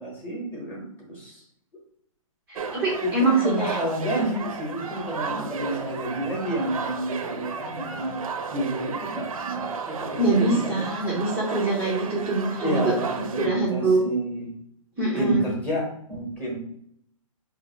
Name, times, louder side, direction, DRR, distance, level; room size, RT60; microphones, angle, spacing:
voice 1, 0.0-1.4 2.9-8.2 8.5-10.9 12.6-14.5 15.1-16.6, right 1 dB, 10° left, -4 dB, 1.1 m, -29 dB
voice 2, 2.5-3.8 10.2-13.0 13.4-14.0 15.0-15.5, right 2 dB, 10° right, -8 dB, 0.6 m, -24 dB
sound 1, 2.6-13.5, right 5 dB, 75° right, 0.6 m, -34 dB
4.2 x 2.6 x 4.0 m, 0.68 s
hypercardioid pair, 170°, 18 cm